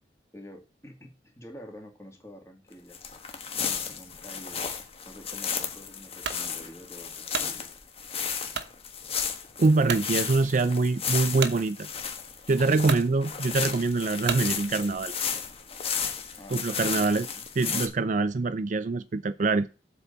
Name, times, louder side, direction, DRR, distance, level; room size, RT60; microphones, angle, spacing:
voice 1, 0.3-3.0 3.6-4.7 5.1-7.7 16.4-16.6 16.9-17.4, equal, 15° left, 2.4 m, -47 dB
sound 1, 2.9-17.9, left 7 dB, 35° left, 1.3 m, -34 dB
sound 2, 6.2-6.5 7.0-7.5 8.5-8.8 9.3-9.4 9.9-10.1 11.4-11.6 12.4-12.5 12.8-13.1 14.2-14.5, right 6 dB, 70° right, 1.0 m, -32 dB
voice 2, 9.6-11.9 12.5-15.1 16.5-17.3 17.6-19.7, right 3 dB, 45° right, 0.4 m, -24 dB
7.9 x 4.1 x 7.0 m
head